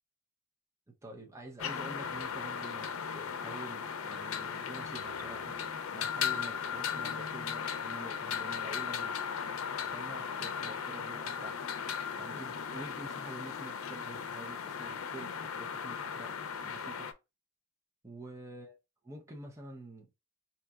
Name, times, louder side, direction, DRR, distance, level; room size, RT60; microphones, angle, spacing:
voice 1, 0.9-5.6 5.9-9.2 9.5-11.6 12.2-16.4 16.6-17.1 18.0-18.8 19.0-20.1, right 2 dB, 15° right, 0.6 m, -48 dB
sound 1, 1.6-17.1, left 7 dB, 90° left, 0.5 m, -37 dB
3.9 x 2.8 x 2.3 m
head